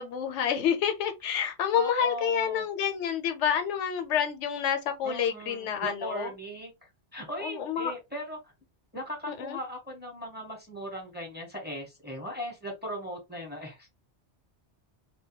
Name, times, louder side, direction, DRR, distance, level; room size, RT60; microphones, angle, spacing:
voice 1, 0.0-6.3 7.4-7.9 9.3-9.6, left 8 dB, 90° left, 0.9 m, -28 dB
voice 2, 1.7-2.6 5.0-6.7 7.1-8.4 8.9-13.9, equal, 10° right, 0.8 m, -38 dB
2.2 x 2.2 x 2.8 m
omnidirectional pair, 1.2 m